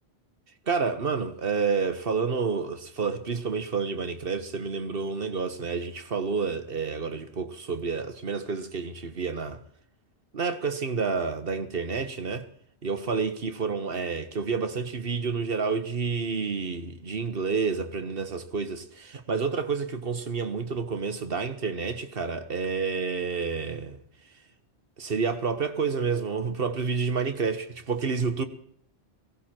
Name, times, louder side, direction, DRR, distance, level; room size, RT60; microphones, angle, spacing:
voice 1, 0.7-9.6 10.3-12.5 12.8-24.0 25.0-28.5, right 5 dB, 55° right, 1.5 m, -29 dB
17.5 x 16.5 x 4.5 m
omnidirectional pair, 1.2 m